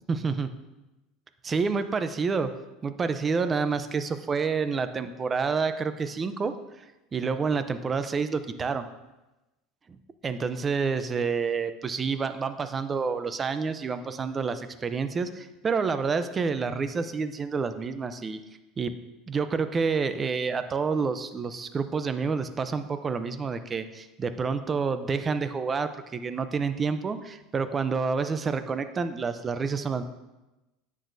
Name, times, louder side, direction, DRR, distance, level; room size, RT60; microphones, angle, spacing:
voice 1, 0.1-0.5 1.4-2.5 2.8-6.5 7.1-8.9 9.9-10.0 10.2-18.4 18.8-18.9 19.3-30.0, right 5 dB, 20° right, 10 dB, 0.6 m, -28 dB
10.5 x 8.4 x 2.7 m, 1.0 s
supercardioid pair, 130°, 0 cm